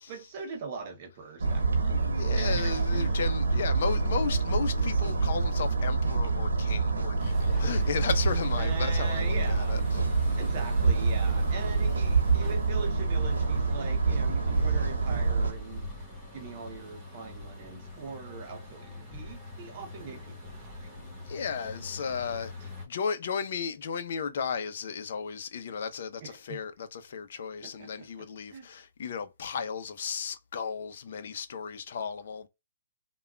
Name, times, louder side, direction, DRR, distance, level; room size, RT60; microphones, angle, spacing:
voice 1, 0.1-2.0 2.3-3.2 8.5-9.9 10.4-16.0 16.3-21.0 22.6-22.7 26.2-26.6 27.6-28.7, right 5 dB, 40° right, 0.6 m, -41 dB
sound 1, 1.4-15.5, right 3 dB, 85° right, 0.9 m, -26 dB
voice 2, 2.2-10.4 21.3-22.5 22.9-32.5, left 6 dB, 60° left, 0.6 m, -34 dB
sound 2, 7.2-22.9, left 2 dB, 10° right, 1.3 m, -43 dB
3.5 x 2.3 x 2.2 m
hypercardioid pair, 145°, 0 cm